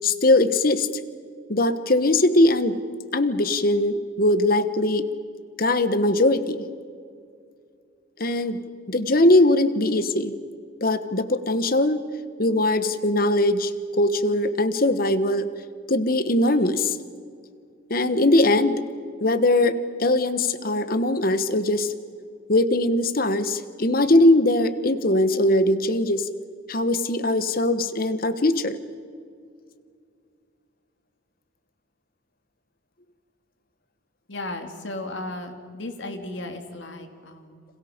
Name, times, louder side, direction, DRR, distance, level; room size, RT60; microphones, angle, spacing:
voice 1, 0.0-0.9 1.5-2.8 3.1-5.0 5.6-6.6 8.2-8.6 8.9-10.3 10.8-12.0 12.4-13.7 14.0-15.5 15.9-17.0 17.9-18.8 19.2-21.9 22.5-26.3 26.7-28.8, left 1 dB, 45° left, 12 dB, 1.2 m, -21 dB
voice 2, 34.3-37.7, left 2 dB, 65° left, 5 dB, 2.6 m, -35 dB
30.0 x 27.5 x 5.2 m, 2.3 s
head